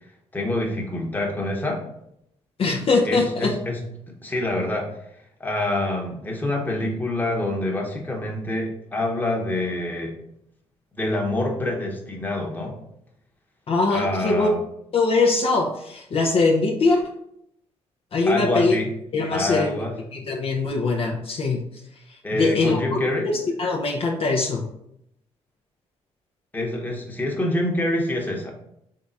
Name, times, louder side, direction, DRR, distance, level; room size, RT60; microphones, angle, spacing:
voice 1, 0.3-1.8 3.1-3.8 4.2-4.9 5.4-10.1 10.9-12.8 13.9-14.6 18.3-18.9 19.3-20.0 22.2-23.3 26.5-28.5, left 1 dB, 15° left, 0 dB, 1.1 m, -26 dB
voice 2, 2.6-3.5 13.7-14.5 14.9-17.0 18.1-18.8 19.1-19.8 20.1-21.6 22.1-23.0 23.2-24.6, left 3 dB, 55° left, 0 dB, 0.7 m, -22 dB
3.8 x 3.4 x 4.0 m, 0.75 s
cardioid pair, 90°, 12 cm